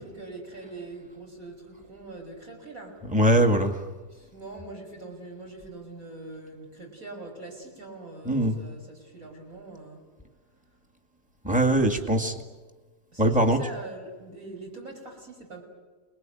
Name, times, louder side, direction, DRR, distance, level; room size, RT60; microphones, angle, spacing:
voice 1, 0.0-3.0 4.1-10.0 12.0-12.2 13.1-15.6, right 2 dB, 50° right, 1 dB, 6.3 m, -42 dB
voice 2, 3.0-3.8 8.2-8.6 11.4-12.3 13.2-13.6, right 1 dB, 5° right, 2 dB, 2.0 m, -22 dB
29.0 x 21.5 x 9.3 m, 1.3 s
omnidirectional pair, 1.9 m